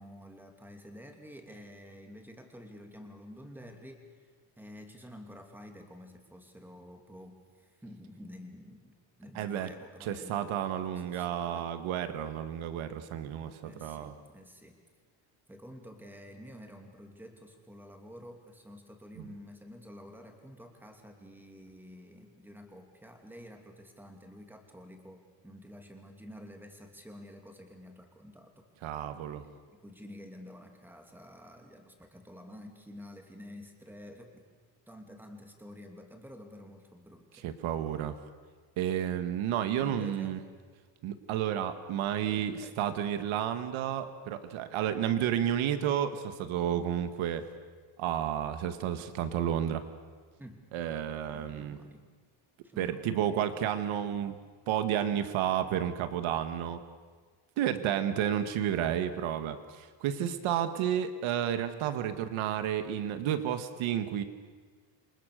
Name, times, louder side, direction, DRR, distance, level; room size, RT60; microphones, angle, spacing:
voice 1, 0.0-10.5 10.9-11.7 13.6-14.8 15.5-28.6 29.4-34.4 34.9-37.4 39.8-40.4 42.3-43.2 50.4-50.8 51.3-52.1 52.6-53.5 57.7-57.9, equal, 5° right, 3 dB, 2.8 m, -50 dB
voice 2, 9.4-9.7 10.0-14.1 19.2-19.3 28.8-29.4 37.4-38.2 38.8-40.4 41.0-47.5 48.0-49.8 50.7-51.8 52.8-54.4 54.7-56.8 57.6-64.2, right 10 dB, 90° right, 9 dB, 1.9 m, -31 dB
28.5 x 25.0 x 6.8 m, 1.5 s
cardioid pair, 175°, 47 cm